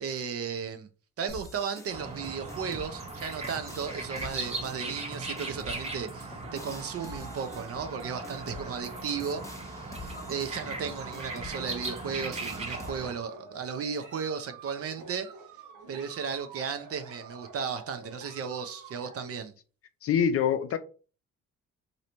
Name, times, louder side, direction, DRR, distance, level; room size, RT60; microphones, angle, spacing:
voice 1, 0.0-0.9 1.2-15.3 15.9-19.5, right 6 dB, 50° right, 0.5 m, -35 dB
sound 1, 1.3-12.9, left 2 dB, 10° left, 0.7 m, -47 dB
sound 2, 1.9-13.1, right 2 dB, 20° right, 0.8 m, -39 dB
sound 3, 5.9-9.5 9.7-10.3 10.8-19.4, right 4 dB, 90° right, 0.9 m, -49 dB
voice 2, 20.0-20.8, left 7 dB, 50° left, 0.5 m, -25 dB
3.1 x 2.7 x 2.9 m
cardioid pair, 90°, 30 cm